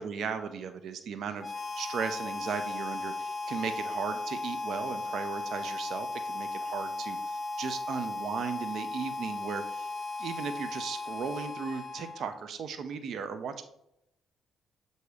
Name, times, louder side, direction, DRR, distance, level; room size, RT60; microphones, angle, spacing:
voice 1, 0.0-9.9 10.2-13.6, right 6 dB, 65° right, 9 dB, 0.6 m, -36 dB
Harmonica, 1.4-12.4, left 2 dB, 25° left, 0.7 m, -36 dB
7.9 x 2.7 x 4.8 m, 0.80 s
cardioid pair, 90°, 0 cm